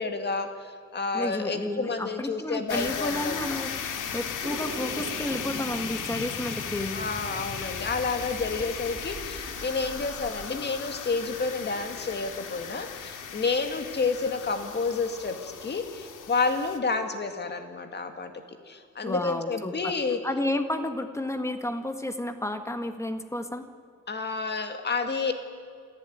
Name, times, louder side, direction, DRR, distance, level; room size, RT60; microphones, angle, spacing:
voice 1, 0.0-3.4 6.9-18.3 18.7-20.2 24.1-25.3, left 4 dB, 35° left, 7 dB, 2.1 m, -30 dB
voice 2, 1.1-3.7 4.1-7.0 19.0-19.9 20.2-23.7, left 1 dB, 10° left, 8 dB, 1.5 m, -31 dB
sound 1, 2.7-16.8, left 7 dB, 85° left, 2.0 m, -37 dB
sound 2, 4.4-10.5, right 2 dB, 25° right, 4.1 m, -41 dB
27.0 x 15.5 x 9.5 m, 2.2 s
wide cardioid pair, 170°, 31 cm